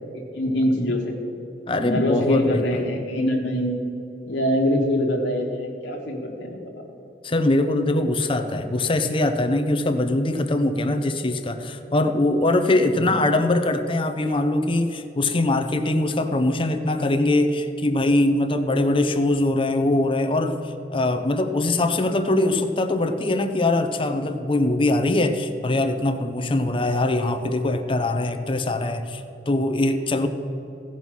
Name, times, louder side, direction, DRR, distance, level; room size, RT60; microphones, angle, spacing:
voice 1, 0.1-1.1 1.8-3.8 4.3-6.8 12.9-13.1 26.7-26.8, left 1 dB, 85° left, -1 dB, 1.4 m, -24 dB
voice 2, 1.7-2.6 7.2-30.3, left 2 dB, 30° left, 7 dB, 0.7 m, -22 dB
16.0 x 5.5 x 6.2 m, 2.9 s
head